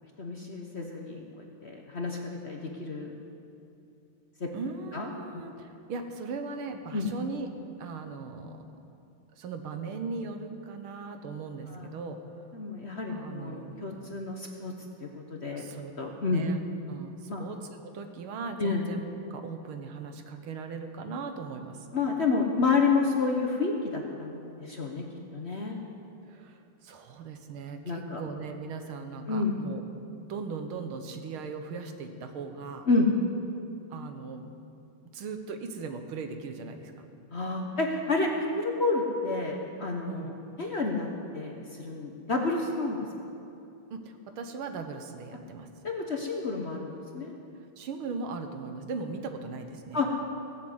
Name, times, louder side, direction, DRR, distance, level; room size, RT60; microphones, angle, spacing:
voice 1, 0.2-3.1 4.4-4.5 4.9-5.1 6.9-7.1 11.7-11.9 12.5-14.7 15.0-15.6 16.0-16.4 17.3-17.4 18.6-18.9 21.9-25.0 25.3-25.8 27.8-28.2 29.3-29.6 32.9-33.1 37.3-40.3 40.6-41.1 41.3-43.1 45.8-47.3 49.9-50.1, left 3 dB, 40° left, 1 dB, 1.0 m, -29 dB
voice 2, 4.5-7.5 7.8-8.6 9.4-12.2 13.1-14.0 15.5-15.9 16.3-16.6 16.9-21.9 26.3-29.8 30.3-32.9 33.9-34.4 35.0-37.1 40.1-40.4 43.9-45.7 47.8-50.0, right 4 dB, 85° right, 6 dB, 2.0 m, -39 dB
18.0 x 7.5 x 8.0 m, 2.7 s
omnidirectional pair, 2.3 m